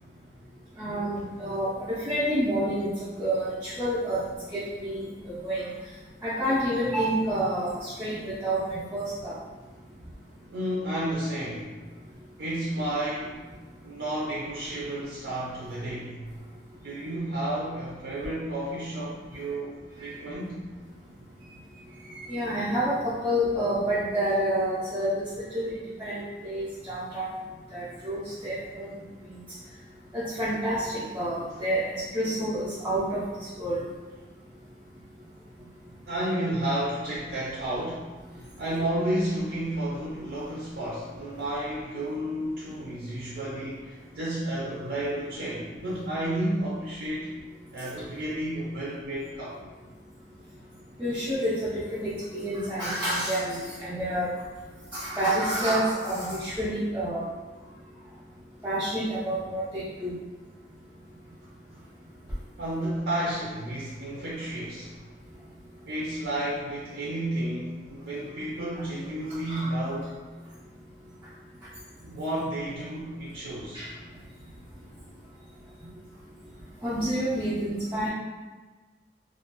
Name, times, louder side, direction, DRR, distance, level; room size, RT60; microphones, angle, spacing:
voice 1, 0.8-2.9 3.2-4.2 4.5-5.7 6.2-9.3 20.0-20.1 22.2-27.3 27.7-29.0 30.1-33.2 33.6-33.8 51.0-54.3 54.9-57.2 58.6-60.1 69.5-69.6 73.7-73.9 76.8-78.1, right 1 dB, 15° right, -10 dB, 0.4 m, -28 dB
voice 2, 10.5-11.8 12.4-13.4 13.8-16.2 16.8-19.7 20.0-20.6 36.1-38.1 38.6-47.3 47.7-49.6 62.6-64.9 65.9-70.2 72.0-73.9, right 1 dB, 70° right, -7 dB, 0.5 m, -31 dB
2.3 x 2.1 x 2.9 m, 1.3 s
head